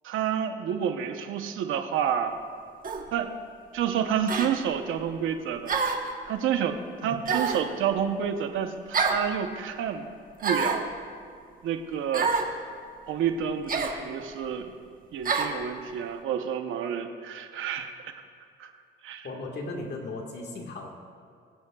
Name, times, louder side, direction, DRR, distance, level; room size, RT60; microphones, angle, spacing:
voice 1, 0.0-2.3 3.1-3.4 3.7-5.7 6.2-6.8 7.0-10.1 10.4-10.8 11.6-12.3 13.1-14.7 15.1-17.9 18.6-18.7 19.0-19.3, right 8 dB, 85° right, 6 dB, 0.9 m, -29 dB
sound 1, 2.8-3.1 4.3-4.5 5.7-6.1 7.3-7.7 8.9-9.2 10.4-10.8 12.1-12.5 13.7-14.0 15.2-15.5, right 4 dB, 45° right, 1.2 m, -27 dB
voice 2, 19.2-20.9, left 2 dB, 60° left, 2 dB, 1.7 m, -36 dB
22.5 x 8.4 x 2.4 m, 2.2 s
cardioid pair, 90°, 20 cm